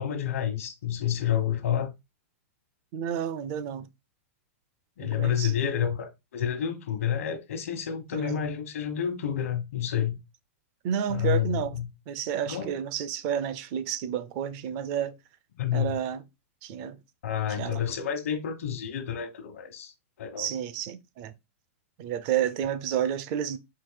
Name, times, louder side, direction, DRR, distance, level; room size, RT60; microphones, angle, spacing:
voice 1, 0.0-1.9 5.0-10.2 11.1-11.9 12.5-12.8 15.6-16.0 17.2-19.9 20.2-20.5, left 9 dB, 80° left, 1.1 m, -29 dB
voice 2, 2.9-3.9 5.0-5.5 8.1-8.4 10.8-11.8 12.1-15.2 15.7-16.2 16.6-17.0 17.5-17.8 20.4-21.3 22.0-23.6, right 9 dB, 40° right, 0.5 m, -30 dB
4.7 x 2.6 x 3.9 m
supercardioid pair, 145°, 7 cm